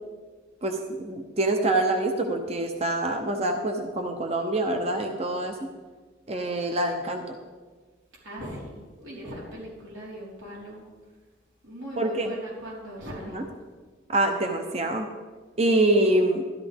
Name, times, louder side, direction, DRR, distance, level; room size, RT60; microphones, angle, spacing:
voice 1, 0.6-5.7 6.3-7.4 12.0-12.3 13.3-13.4 14.1-15.1 15.6-16.4, right 1 dB, 35° right, 5 dB, 0.8 m, -25 dB
voice 2, 8.2-10.8 11.6-13.5, equal, 90° right, -6 dB, 4.1 m, -39 dB
13.0 x 12.0 x 3.5 m, 1.4 s
head